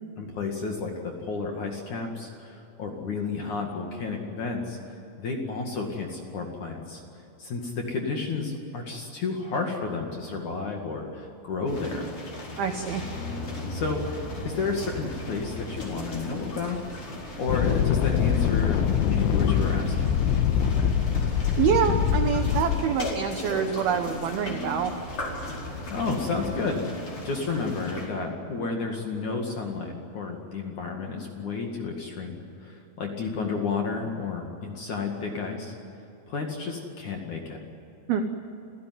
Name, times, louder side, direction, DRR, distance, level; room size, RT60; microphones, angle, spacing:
voice 1, 0.2-4.8 5.2-7.0 7.4-12.1 13.7-16.8 17.4-20.2 25.9-35.7 36.3-37.6, left 4 dB, 50° left, 2 dB, 2.6 m, -31 dB
sound 1, 11.7-28.1, left 1 dB, 30° left, 5.3 m, -37 dB
sound 2, 12.3-26.6, left 1 dB, 15° left, 3.8 m, -43 dB
voice 2, 12.6-13.0 21.6-24.9 38.1-38.2, right 7 dB, 75° right, 6 dB, 2.3 m, -26 dB
sound 3, 17.5-22.8, left 8 dB, 80° left, 3.3 m, -24 dB
27.5 x 16.5 x 9.6 m, 2.9 s
omnidirectional pair, 6.0 m